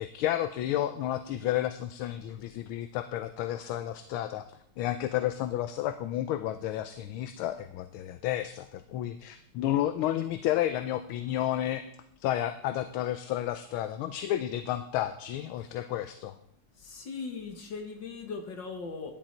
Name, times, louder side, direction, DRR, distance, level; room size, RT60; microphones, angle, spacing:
voice 1, 0.0-11.8 12.2-16.4, left 12 dB, 80° left, 10 dB, 1.4 m, -31 dB
voice 2, 16.8-19.1, left 4 dB, 60° left, 4 dB, 1.9 m, -39 dB
13.0 x 10.0 x 4.4 m, 0.73 s
omnidirectional pair, 2.4 m